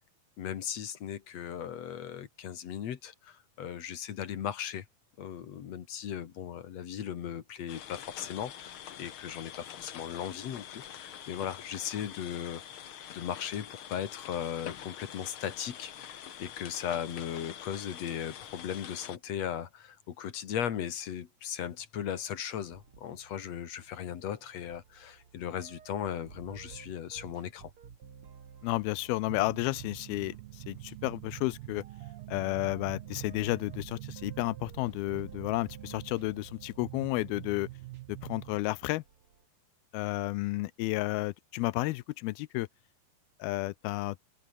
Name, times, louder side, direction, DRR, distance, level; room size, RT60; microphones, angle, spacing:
voice 1, 0.4-4.9 5.2-12.6 13.1-27.7, left 9 dB, 55° left, 2.4 m, -37 dB
sound 1, 7.7-19.2, left 10 dB, 70° left, 1.2 m, -46 dB
sound 2, 22.7-39.4, right 7 dB, 40° right, 2.6 m, -54 dB
voice 2, 28.6-31.8 32.3-37.7 38.1-39.0 39.9-42.7 43.4-44.2, left 20 dB, 90° left, 2.5 m, -32 dB
sound 3, 29.3-38.6, right 18 dB, 85° right, 2.6 m, -45 dB
open air
omnidirectional pair, 4.3 m